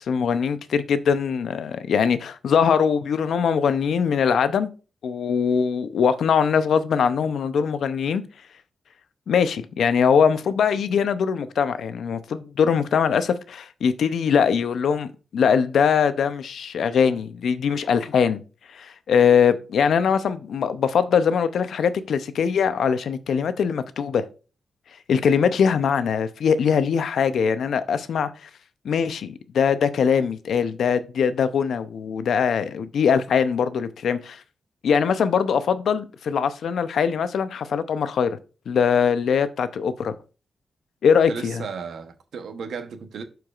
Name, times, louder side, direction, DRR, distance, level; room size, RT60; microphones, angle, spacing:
voice 1, 0.0-4.7 5.0-8.2 9.3-18.4 18.7-24.2 25.1-28.5 28.8-34.4 34.8-38.4 38.7-40.1 41.0-41.6, left 7 dB, 85° left, 0.6 m, -22 dB
voice 2, 41.3-43.2, right 5 dB, 85° right, 0.9 m, -34 dB
11.5 x 4.6 x 2.4 m
wide cardioid pair, 110°, 0 cm